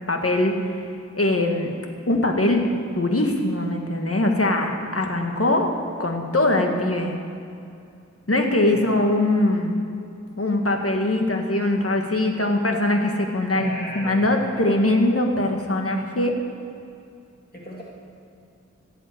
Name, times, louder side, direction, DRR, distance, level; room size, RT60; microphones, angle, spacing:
voice 1, 0.1-0.8 1.2-1.7 2.1-2.6 2.9-5.7 6.0-7.2 8.3-9.8 10.4-16.3, left 1 dB, 50° left, 2 dB, 1.9 m, -22 dB
voice 2, 13.5-14.3 17.5-17.8, equal, 35° left, -4 dB, 2.3 m, -36 dB
16.5 x 7.9 x 8.0 m, 2.5 s
wide cardioid pair, 45°, 29 cm